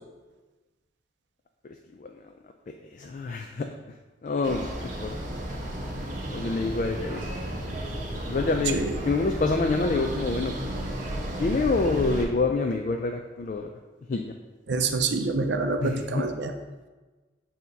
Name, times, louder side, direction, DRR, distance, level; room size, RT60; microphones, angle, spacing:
voice 1, 3.0-3.7 4.2-5.1 6.3-7.2 8.3-8.8 9.0-10.6 11.4-13.7 14.1-14.3 15.8-16.2, left 3 dB, 45° left, 4 dB, 0.3 m, -26 dB
sound 1, 4.4-12.3, equal, 45° right, 1.0 m, -33 dB
voice 2, 14.7-16.5, right 3 dB, 75° right, 5 dB, 0.5 m, -27 dB
8.4 x 2.8 x 3.9 m, 1.2 s
head